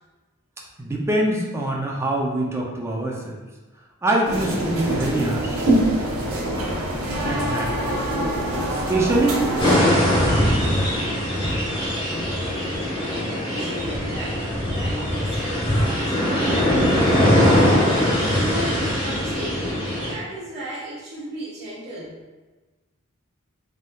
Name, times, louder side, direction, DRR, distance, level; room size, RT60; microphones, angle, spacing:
voice 1, 0.8-3.4 4.0-5.6 7.3-7.7 8.7-9.4 9.8-10.6, right 1 dB, 10° right, -2 dB, 0.4 m, -24 dB
sound 1, 4.2-9.8, right 1 dB, 85° right, 0.8 m, -24 dB
voice 2, 9.2-9.7 13.5-17.0 17.4-19.7 19.9-22.2, right 1 dB, 50° right, -8 dB, 1.2 m, -34 dB
sound 2, 9.6-20.1, equal, 25° left, 0.8 m, -21 dB
3.4 x 2.6 x 2.3 m, 1.2 s
head